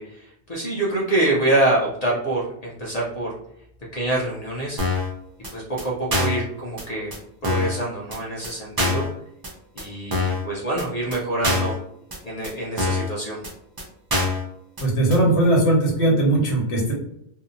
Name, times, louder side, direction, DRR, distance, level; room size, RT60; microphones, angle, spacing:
voice 1, 0.0-3.3 3.9-4.8 5.5-7.1 7.4-9.0 9.7-11.7 12.2-13.4, right 2 dB, 45° left, -4 dB, 0.5 m, -25 dB
sound 1, 4.8-5.1 5.4-5.5 5.8-5.9 6.1-6.4 6.8-6.9 7.1-7.2 7.4-7.8 8.1-8.2 8.4-8.5 8.8-9.1 9.4-9.5 9.8-9.9 10.1-10.4 10.8-10.9 11.1-11.2 11.4-11.8 12.1-12.2 12.4-12.5 12.8-13.1 13.4-13.5 13.8-13.9 14.1-14.4 14.8-14.9 15.1-15.2, left 2 dB, 35° right, 0.3 m, -24 dB
voice 2, 14.8-16.9, right 1 dB, 75° left, -1 dB, 1.1 m, -19 dB
2.7 x 2.1 x 2.5 m, 0.76 s
omnidirectional pair, 1.2 m